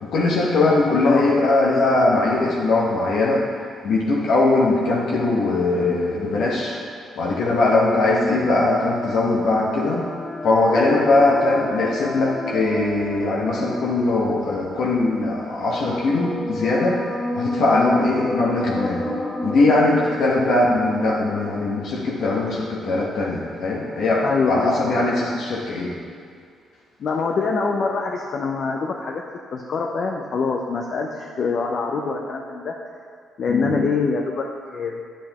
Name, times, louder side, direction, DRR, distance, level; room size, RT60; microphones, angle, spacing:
voice 1, 0.0-3.4 3.8-6.8 7.2-10.0 10.4-17.0 17.3-19.0 19.4-25.9 33.5-33.7, left 2 dB, 70° left, -4 dB, 1.1 m, -20 dB
voice 2, 1.0-1.4 24.2-24.9 27.0-29.2 29.5-32.7 33.4-34.5 34.7-35.0, left 4 dB, 55° left, 1 dB, 0.6 m, -24 dB
sound 1, 9.1-23.0, left 1 dB, 20° left, 1.0 m, -32 dB
8.7 x 7.4 x 3.0 m, 2.2 s
cardioid pair, 90°, 0 cm